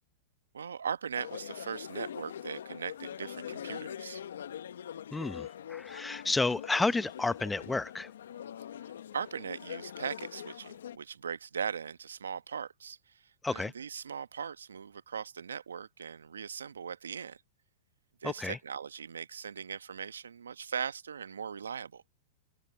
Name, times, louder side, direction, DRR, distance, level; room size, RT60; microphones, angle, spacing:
voice 1, 0.5-4.2 9.1-17.4 18.2-22.0, right 7 dB, 85° right, 1.2 m, -39 dB
sound 1, 1.2-11.0, left 9 dB, 75° left, 1.0 m, -43 dB
voice 2, 5.1-8.1 13.4-13.7 18.2-18.6, left 3 dB, 10° left, 0.7 m, -31 dB
hypercardioid pair, 115°, 0 cm